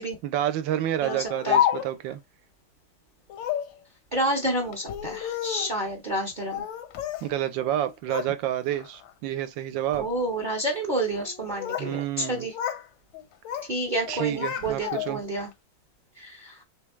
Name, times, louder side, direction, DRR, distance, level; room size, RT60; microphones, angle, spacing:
voice 1, 0.2-2.2 7.2-10.1 11.8-12.5 14.1-15.2, right 12 dB, 80° right, 1.3 m, -29 dB
Speech, 1.0-2.1 3.3-3.7 4.7-5.8 6.5-7.3 7.6-8.3 8.7-9.1 9.8-10.1 11.2-11.9 12.2-12.9 13.1-13.7 14.1-15.3, left 10 dB, 85° left, 1.3 m, -30 dB
voice 2, 1.0-1.6 4.1-6.6 9.9-12.5 13.7-15.5 16.2-16.5, right 1 dB, 35° right, 0.8 m, -29 dB
3.6 x 3.4 x 3.0 m
omnidirectional pair, 2.0 m